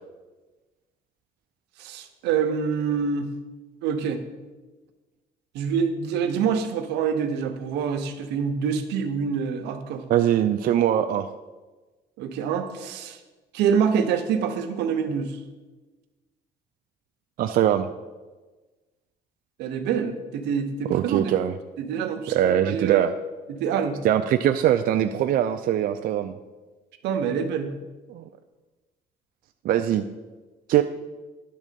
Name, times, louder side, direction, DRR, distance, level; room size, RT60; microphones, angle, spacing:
voice 1, 1.8-3.3 3.8-4.2 5.5-10.0 12.2-13.2 13.5-15.4 19.6-21.4 21.8-22.4 22.6-23.0 23.5-24.0 27.0-27.7, right 6 dB, 85° right, 7 dB, 0.9 m, -26 dB
voice 2, 10.1-11.3 17.4-17.9 20.9-21.5 22.3-23.1 24.0-26.4 28.1-28.2 29.6-30.0 30.7-30.8, right 11 dB, 60° right, 7 dB, 0.4 m, -22 dB
10.5 x 3.6 x 6.8 m, 1.2 s
cardioid pair, 110°, 17 cm